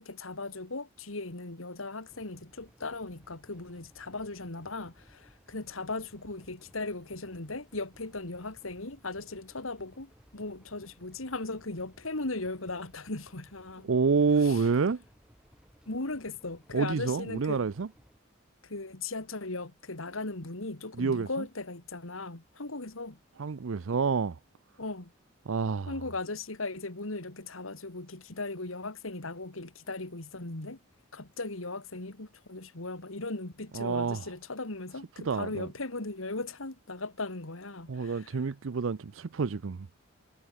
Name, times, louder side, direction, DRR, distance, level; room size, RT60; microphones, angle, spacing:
voice 1, 0.0-13.9 14.4-14.7 15.9-17.7 18.6-23.2 24.8-25.1 25.9-30.8 31.1-38.5, left 2 dB, 90° left, 2.6 m, -38 dB
sound 1, 2.1-18.2, equal, 5° right, 6.2 m, -61 dB
voice 2, 13.9-15.0 16.7-17.9 21.0-21.3 23.4-24.4 25.5-25.9 33.8-34.2 35.3-35.7 37.9-39.9, right 5 dB, 80° right, 0.5 m, -28 dB
head